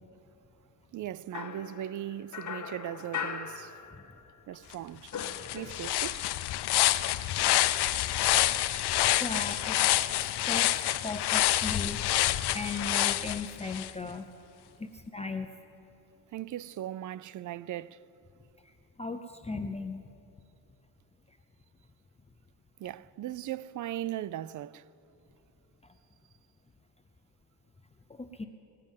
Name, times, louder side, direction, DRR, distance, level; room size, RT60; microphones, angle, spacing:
voice 1, 0.9-3.7 4.5-5.3 5.5-6.2 10.5-10.8 16.3-18.0 22.8-24.8, right 12 dB, 45° right, 0.4 m, -38 dB
sound 1, 1.3-4.4 4.6-6.1, left 6 dB, 40° left, 1.2 m, -40 dB
sound 2, 4.7-4.8 5.1-13.9, left 14 dB, 60° left, 0.6 m, -27 dB
voice 2, 9.2-9.8 10.4-10.7 11.0-12.0 12.5-14.3 14.8-15.5 18.6-18.7 19.0-20.0 28.1-28.5, left 3 dB, 15° left, 0.7 m, -37 dB
19.5 x 7.5 x 9.1 m
cardioid pair, 95°, 44 cm